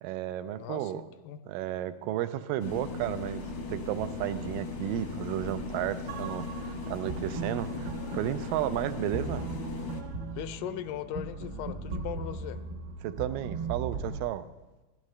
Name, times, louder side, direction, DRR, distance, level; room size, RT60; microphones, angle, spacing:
voice 1, 0.0-1.1 1.5-9.5 13.0-14.5, right 13 dB, 85° right, 12 dB, 2.2 m, -33 dB
voice 2, 0.6-1.4 10.4-12.6, left 11 dB, 85° left, 12 dB, 2.2 m, -39 dB
sound 1, 2.6-10.0, left 3 dB, 65° left, 1.1 m, -37 dB
sound 2, 6.1-14.2, right 4 dB, 55° right, 1.5 m, -38 dB
17.0 x 12.0 x 3.2 m, 1.2 s
omnidirectional pair, 3.8 m